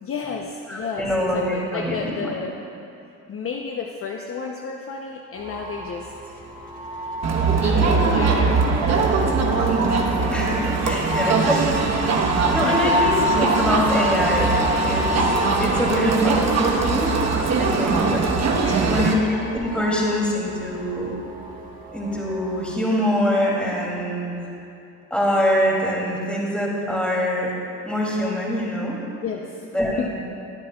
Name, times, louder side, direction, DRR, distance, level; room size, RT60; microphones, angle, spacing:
voice 1, 0.0-1.1 1.3-2.5 3.3-6.3 7.6-9.2 10.4-10.7 11.5-11.6 12.6-13.0 16.8-17.0 18.6-19.1 29.2-29.7 30.0-30.1, left 5 dB, 40° left, 1 dB, 0.7 m, -31 dB
voice 2, 0.7-2.3 10.3-12.2 12.5-14.6 14.8-15.1 15.6-17.2 17.5-18.3 18.9-21.1 21.9-24.5 25.1-27.5 27.8-29.0 29.7-30.1, equal, 5° left, -4 dB, 2.6 m, -24 dB
sound 1, 5.4-22.7, left 2 dB, 25° right, 1.7 m, -31 dB
Crowd, 7.2-19.1, right 4 dB, 50° right, 1.1 m, -21 dB
21.5 x 7.8 x 2.3 m, 2.7 s
cardioid pair, 90°, 35 cm